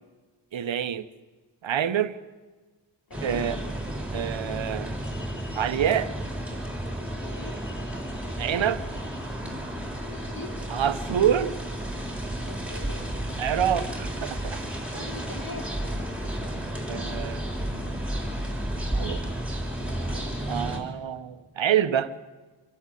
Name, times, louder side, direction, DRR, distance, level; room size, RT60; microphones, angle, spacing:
voice 1, 0.5-1.0 1.6-2.2 3.2-3.6 4.1-5.0 5.6-6.1 8.4-8.8 10.7-11.6 13.4-14.6 16.4-16.5 16.9-17.4 18.9-19.2 19.9-22.1, right 9 dB, 85° right, 13 dB, 0.9 m, -27 dB
voice 2, 3.1-3.5 7.0-7.6 10.0-10.6 12.4-13.3 14.9-15.8, left 2 dB, 50° left, 2 dB, 3.8 m, -42 dB
sound 1, 3.1-20.8, right 1 dB, 5° right, 4.2 m, -32 dB
26.0 x 12.5 x 9.1 m, 1.3 s
wide cardioid pair, 75°, 45 cm